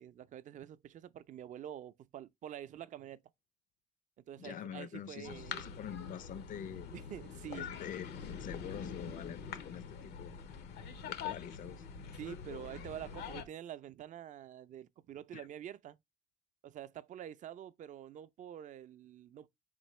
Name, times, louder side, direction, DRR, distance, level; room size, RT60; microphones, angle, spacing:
voice 1, 0.0-3.2 4.2-5.6 6.9-7.7 12.2-16.0 16.6-19.5, right 10 dB, 50° right, 0.4 m, -47 dB
voice 2, 4.4-6.9 7.5-10.3 11.1-11.9 15.3-15.4, left 9 dB, 50° left, 0.4 m, -45 dB
sound 1, 5.2-13.4, left 7 dB, 85° left, 0.8 m, -44 dB
4.4 x 3.7 x 3.1 m
cardioid pair, 110°, 17 cm